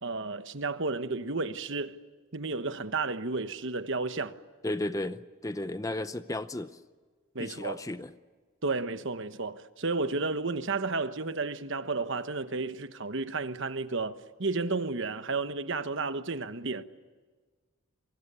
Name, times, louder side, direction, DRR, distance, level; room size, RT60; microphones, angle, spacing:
voice 1, 0.0-2.0 2.3-4.3 7.3-7.8 8.6-16.8, right 3 dB, 60° right, 1.2 m, -32 dB
voice 2, 4.6-6.7 7.4-8.1, left 1 dB, 15° left, 0.7 m, -34 dB
29.0 x 24.0 x 6.9 m
head